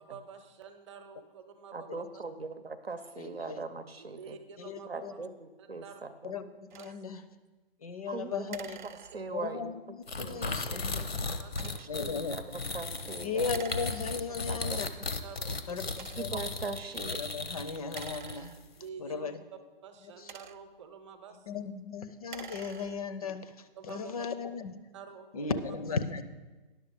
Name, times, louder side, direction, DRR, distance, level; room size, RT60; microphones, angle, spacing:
voice 1, 0.0-2.2 4.1-5.2 5.6-6.0 6.8-7.2 10.4-11.9 14.5-14.7 15.2-16.0 18.7-19.4 19.8-21.5 23.8-24.3 24.9-25.6, right 6 dB, 30° right, 7 dB, 0.8 m, -49 dB
voice 2, 1.7-4.4 4.9-6.4 8.1-10.8 11.6-13.5 14.5-14.8 16.2-17.2, right 3 dB, 90° right, 10 dB, 0.8 m, -41 dB
voice 3, 3.2-3.6 4.6-5.1 6.2-6.5 6.7-7.2 7.8-8.8 9.3-11.0 11.9-12.4 13.2-14.9 15.7-16.3 17.0-18.5 19.0-19.4 20.2-20.3 21.5-23.4 23.9-24.8 25.3-26.2, left 5 dB, 40° left, 12 dB, 0.5 m, -36 dB
sound 1, 6.7-7.0 8.5-9.5 11.5-12.0 13.5-14.5 15.2-15.3 15.9-16.5 17.8-19.0 20.0-20.9 22.1-23.2, right 8 dB, 55° right, 0.4 m, -48 dB
sound 2, 10.1-18.6, left 3 dB, 85° left, 0.9 m, -36 dB
10.5 x 6.6 x 5.0 m, 1.2 s
figure-of-eight pair, 135°, 29 cm